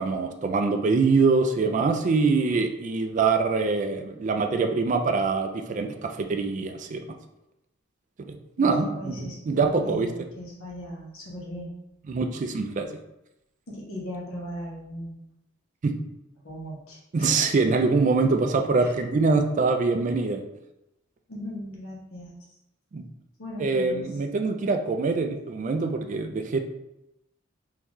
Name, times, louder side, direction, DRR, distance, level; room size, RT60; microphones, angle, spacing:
voice 1, 0.0-7.0 8.3-10.1 12.1-12.9 15.8-15.9 17.1-20.4 22.9-23.0 23.6-26.6, right 4 dB, 35° right, 5 dB, 0.3 m, -24 dB
voice 2, 8.6-11.7 13.7-15.2 16.4-17.5 18.8-18.9 21.3-22.4 23.4-24.1, left 1 dB, 90° left, -3 dB, 1.1 m, -38 dB
3.8 x 2.6 x 3.0 m, 0.87 s
head